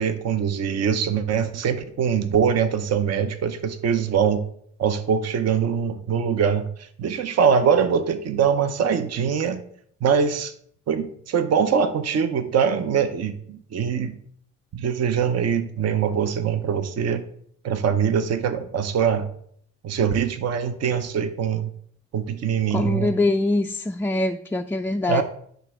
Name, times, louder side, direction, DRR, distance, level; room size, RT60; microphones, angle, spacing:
voice 1, 0.0-4.4 4.8-9.6 10.0-10.5 10.9-14.2 14.7-17.3 17.6-19.3 19.8-21.7 22.1-23.1 25.1-25.2, right 7 dB, 55° right, 10 dB, 0.8 m, -23 dB
voice 2, 22.7-25.2, left 2 dB, 10° left, 3 dB, 0.3 m, -23 dB
9.8 x 3.4 x 6.0 m, 0.64 s
cardioid pair, 90°, 30 cm